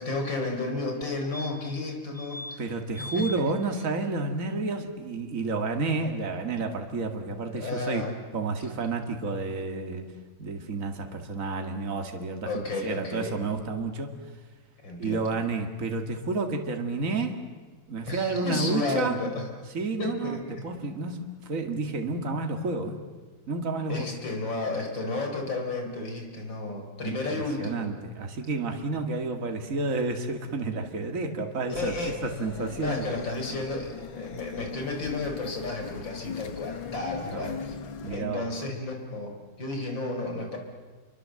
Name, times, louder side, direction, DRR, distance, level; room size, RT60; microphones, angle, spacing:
voice 1, 0.0-2.7 3.0-3.3 7.5-8.1 12.5-13.4 14.8-15.3 18.0-19.5 20.0-20.7 23.9-27.9 31.7-32.2 32.8-37.8 38.1-40.6, left 2 dB, 70° left, 3 dB, 5.1 m, -32 dB
sound 1, 1.0-1.1 1.3-1.8 2.1-2.6 2.9-3.4 5.8-5.9 6.1-6.2, left 1 dB, 30° left, 4.0 m, -39 dB
voice 2, 2.6-8.0 8.3-10.1 10.4-14.1 15.0-17.4 17.9-19.2 19.7-23.0 23.5-24.1 27.0-33.0 37.3-37.6 38.0-38.5, right 3 dB, 45° right, 4 dB, 2.5 m, -30 dB
sound 2, 31.7-38.2, left 6 dB, 90° left, 2.2 m, -39 dB
29.5 x 23.5 x 7.7 m, 1.4 s
omnidirectional pair, 2.1 m